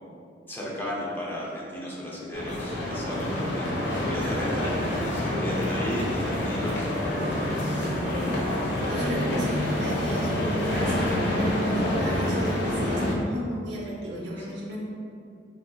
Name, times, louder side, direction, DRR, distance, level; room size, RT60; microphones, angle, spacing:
voice 1, 0.5-6.9 14.4-14.5, left 1 dB, 10° left, -5 dB, 0.7 m, -34 dB
sound 1, 2.3-13.1, left 1 dB, 80° left, 0.8 m, -27 dB
voice 2, 8.9-14.8, equal, 85° right, -4 dB, 0.9 m, -34 dB
5.6 x 2.8 x 2.3 m, 2.4 s
head